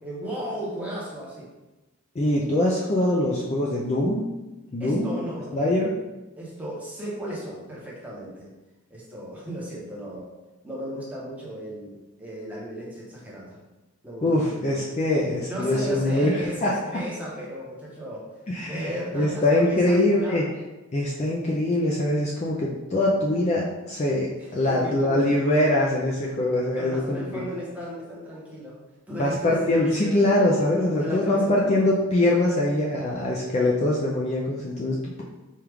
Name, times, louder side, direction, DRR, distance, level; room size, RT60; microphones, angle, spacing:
voice 1, 0.0-1.5 4.8-5.7 6.4-8.5 8.9-10.3 10.6-13.6 14.0-14.8 15.5-18.3 18.6-20.5 24.4-25.3 26.5-28.7 29.1-30.3 30.8-31.9, equal, 5° right, -6 dB, 0.9 m, -35 dB
voice 2, 2.2-4.2 4.7-5.2 5.5-5.9 14.2-16.7 18.5-20.4 20.9-27.4 29.1-35.2, left 1 dB, 30° left, -3 dB, 0.3 m, -23 dB
4.5 x 2.4 x 3.4 m, 1.1 s
head